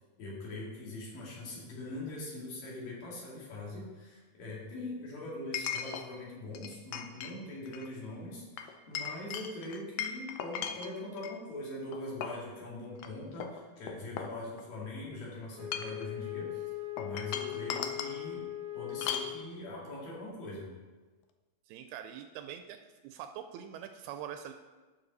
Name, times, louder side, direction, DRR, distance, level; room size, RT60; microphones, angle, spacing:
voice 1, 0.2-16.7 17.0-18.4 18.7-20.7, left 2 dB, 60° left, -5 dB, 3.7 m, -42 dB
Chink clink, 2.1-2.2 5.5-6.1 6.5-7.3 7.7-7.9 8.6-11.4 11.9-12.5 13.0-13.1 13.4-14.8 15.5-16.1 17.0-18.2 19.0-19.3, left 8 dB, 85° left, 1.9 m, -38 dB
Wind instrument woodwind instrument, 15.5-19.7, left 13 dB, 55° right, 1.3 m, -40 dB
voice 2, 21.7-22.8 23.0-24.5, right 9 dB, 80° right, 7 dB, 2.4 m, -43 dB
11.5 x 6.5 x 4.1 m, 1.3 s
omnidirectional pair, 4.7 m